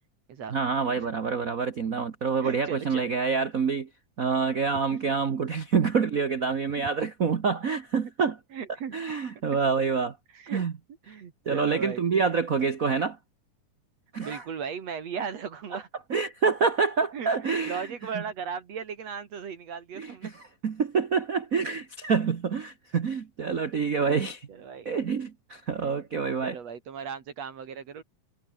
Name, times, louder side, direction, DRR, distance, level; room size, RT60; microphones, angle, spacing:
voice 1, 0.5-3.9 4.2-8.4 8.9-10.2 10.5-10.7 11.4-13.2 14.1-14.4 16.1-17.9 18.1-18.2 20.0-24.5 24.8-26.6, right 5 dB, 80° right, 0.7 m, -27 dB
voice 2, 2.4-3.1 4.9-5.1 6.8-6.9 8.5-8.9 9.5-9.6 10.3-10.7 11.1-12.0 14.2-15.9 17.1-20.3 24.5-24.9 25.7-26.1 26.4-28.0, right 6 dB, 60° right, 3.1 m, -37 dB
omnidirectional pair, 3.6 m